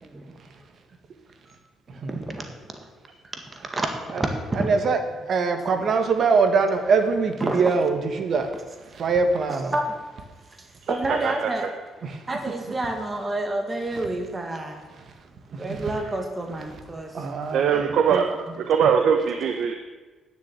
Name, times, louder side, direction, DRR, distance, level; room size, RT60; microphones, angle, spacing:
voice 1, 0.0-0.3 2.0-2.5 3.3-3.4 3.7-3.9 4.2-4.3 4.6-4.7 7.4-7.6 9.7-9.9 10.9-11.6 12.3-14.8 15.6-17.1, right 2 dB, 25° right, 4 dB, 1.9 m, -28 dB
voice 2, 4.5-5.0 5.3-8.5 8.8-9.7 12.0-12.4 12.7-12.8 13.9-14.1 14.9-15.0 15.5-15.9 17.1-18.2, right 4 dB, 55° right, 7 dB, 1.7 m, -23 dB
voice 3, 10.9-11.7 17.5-18.3 18.6-19.7, right 7 dB, 75° right, 5 dB, 0.9 m, -22 dB
10.0 x 7.2 x 9.1 m, 1.3 s
cardioid pair, 90°, 0 cm